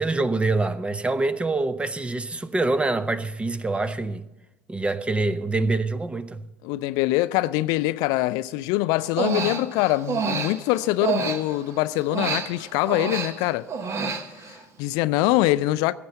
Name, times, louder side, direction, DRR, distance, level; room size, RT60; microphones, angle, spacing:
voice 1, 0.0-4.2 4.7-6.4, right 3 dB, 15° right, 0.7 m, -25 dB
voice 2, 6.6-13.7 14.5-15.9, left 17 dB, 60° left, 0.4 m, -24 dB
Human voice, 9.0-11.7 12.1-14.6, right 5 dB, 40° right, 1.3 m, -28 dB
15.5 x 6.8 x 7.5 m
figure-of-eight pair, 65°, 8 cm